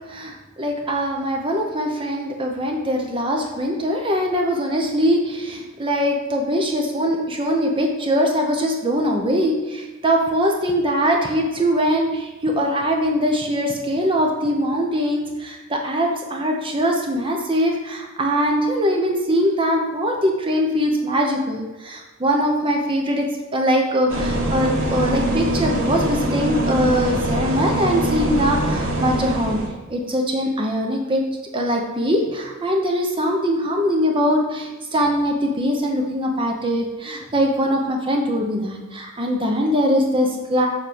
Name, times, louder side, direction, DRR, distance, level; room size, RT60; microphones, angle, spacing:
voice 1, 0.1-29.6 29.9-31.2 31.5-40.7, equal, 25° right, 1 dB, 0.9 m, -22 dB
sound 1, 24.1-29.7, right 1 dB, 85° right, 1.8 m, -23 dB
6.9 x 4.5 x 6.9 m, 1.2 s
head